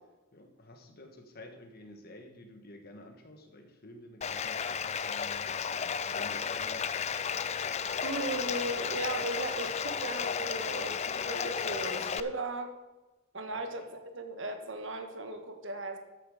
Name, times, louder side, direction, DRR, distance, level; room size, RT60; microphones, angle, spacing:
voice 1, 0.3-5.5 6.0-7.0 13.5-13.7, left 1 dB, 50° left, 4 dB, 1.5 m, -51 dB
Bathtub (filling or washing), 4.2-12.2, left 7 dB, 35° left, 0.4 m, -33 dB
voice 2, 8.0-12.7 13.3-16.0, right 2 dB, 65° right, 6 dB, 1.4 m, -37 dB
13.0 x 7.9 x 5.0 m, 1.1 s
head